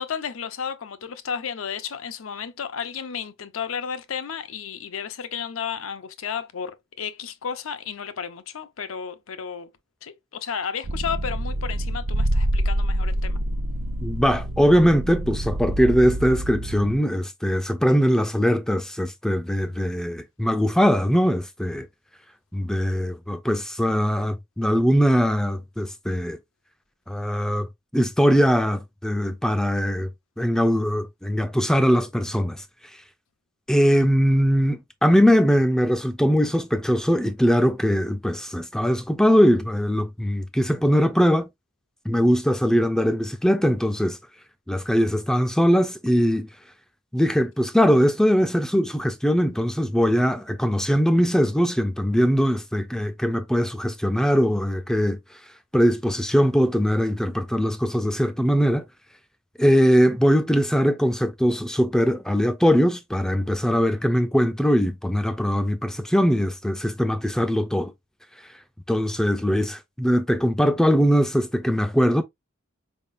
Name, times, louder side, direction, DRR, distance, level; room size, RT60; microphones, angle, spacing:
voice 1, 0.0-9.7 10.0-13.4, left 7 dB, 85° left, 0.6 m, -33 dB
sound 1, 10.8-17.0, right 1 dB, 80° right, 0.6 m, -26 dB
voice 2, 14.0-21.9 22.5-26.4 27.1-27.7 27.9-30.1 30.4-32.6 33.7-41.5 42.1-44.2 44.7-46.5 47.1-55.2 55.7-58.8 59.6-67.9 68.9-72.2, equal, 5° left, 0.3 m, -21 dB
4.5 x 3.5 x 2.5 m
head